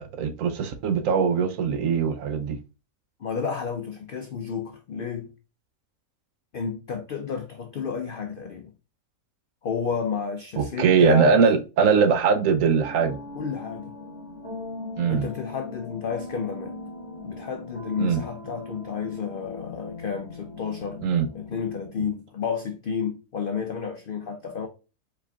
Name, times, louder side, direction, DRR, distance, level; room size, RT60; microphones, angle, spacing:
voice 1, 0.0-2.6 10.6-13.2 15.0-15.3 18.0-18.2 21.0-21.3, right 6 dB, 70° right, 0.9 m, -21 dB
voice 2, 3.2-5.3 6.5-8.7 9.6-11.4 13.3-14.0 15.1-16.8 17.2-21.0 21.3-24.7, left 6 dB, 80° left, 0.4 m, -31 dB
sound 1, 12.8-21.9, left 2 dB, 25° left, 1.7 m, -40 dB
4.7 x 4.4 x 2.3 m
omnidirectional pair, 1.6 m